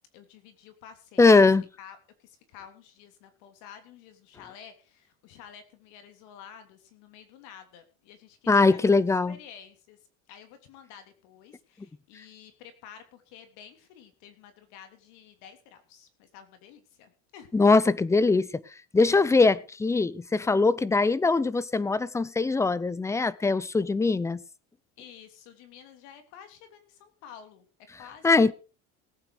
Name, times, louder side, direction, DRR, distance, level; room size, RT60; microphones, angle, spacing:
voice 1, 0.1-1.3 1.8-10.0 10.3-17.5 25.0-27.7 28.0-28.5, left 8 dB, 75° left, 3.2 m, -50 dB
voice 2, 1.2-1.7 8.5-9.4 17.5-18.6 18.9-24.4 28.2-28.5, left 3 dB, 10° left, 0.6 m, -21 dB
18.0 x 8.7 x 4.9 m
cardioid pair, 140°, 31 cm